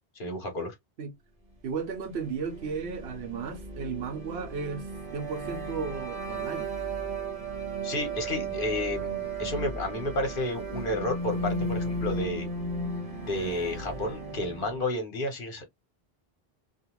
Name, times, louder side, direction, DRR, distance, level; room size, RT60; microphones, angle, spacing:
voice 1, 0.1-0.7 7.8-12.5 13.2-15.6, left 1 dB, 60° left, 1.1 m, -31 dB
voice 2, 1.6-4.9 5.1-6.7, right 5 dB, 90° right, 1.0 m, -34 dB
sound 1, 1.9-14.9, right 2 dB, 45° right, 1.1 m, -35 dB
2.4 x 2.4 x 2.9 m
omnidirectional pair, 1.0 m